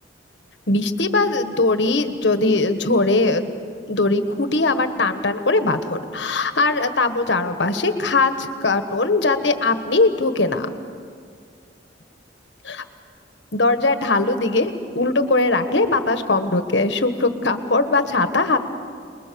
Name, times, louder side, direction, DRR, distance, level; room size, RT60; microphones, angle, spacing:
voice 1, 0.7-3.5 3.9-10.7 12.6-12.8 13.5-18.6, left 3 dB, 70° left, 8 dB, 1.5 m, -20 dB
28.0 x 21.0 x 7.0 m, 2.1 s
head